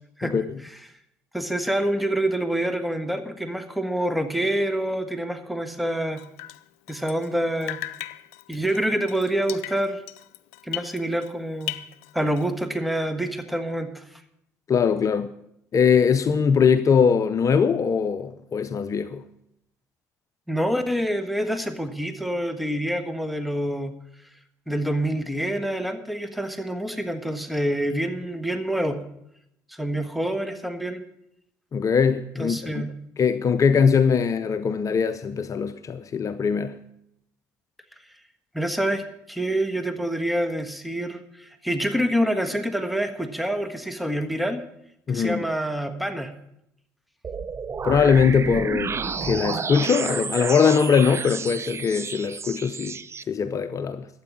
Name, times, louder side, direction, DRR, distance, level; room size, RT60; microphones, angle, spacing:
voice 1, 0.2-0.7 1.3-6.2 6.9-7.8 8.5-10.0 10.6-11.8 12.1-14.0 20.5-23.9 24.7-29.0 29.7-31.0 32.4-32.9 38.5-39.0 39.3-44.6 45.1-46.3, right 1 dB, ahead, 1.5 m, -26 dB
Drip, 6.2-7.4 7.6-11.3 11.6-12.6, left 15 dB, 80° left, 0.4 m, -37 dB
voice 2, 14.7-15.3 15.7-19.2 31.7-32.9 33.2-36.8 45.1-45.4 47.8-53.0 53.3-54.1, left 6 dB, 45° left, 0.6 m, -21 dB
sound 1, 47.2-53.2, right 5 dB, 35° right, 0.7 m, -31 dB
12.0 x 8.7 x 7.4 m
hypercardioid pair, 55°, 8 cm